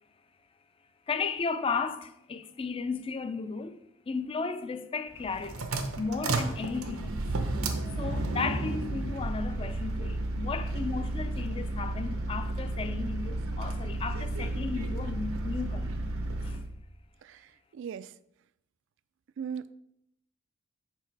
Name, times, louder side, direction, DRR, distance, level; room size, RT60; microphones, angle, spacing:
voice 1, 1.1-3.8 4.1-5.7 6.0-7.2 8.0-15.9 16.4-16.6, left 4 dB, 25° left, 0.4 m, -34 dB
sound 1, 5.1-16.7, right 2 dB, 85° right, 0.9 m, -32 dB
voice 2, 17.2-18.1 19.4-19.7, right 7 dB, 60° right, 0.3 m, -39 dB
6.0 x 4.5 x 4.6 m
head